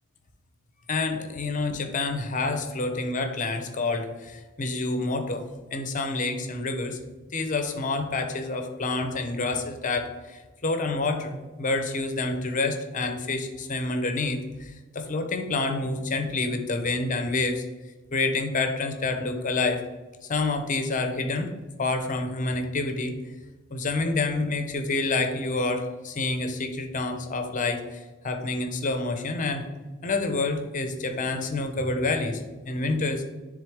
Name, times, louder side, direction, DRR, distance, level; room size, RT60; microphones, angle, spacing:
voice 1, 0.9-5.4 5.7-7.0 7.3-17.6 18.1-19.8 20.3-21.5 21.8-23.2 23.7-29.6 30.0-33.2, left 3 dB, 35° left, 6 dB, 0.7 m, -28 dB
10.5 x 3.6 x 3.5 m, 1.2 s
head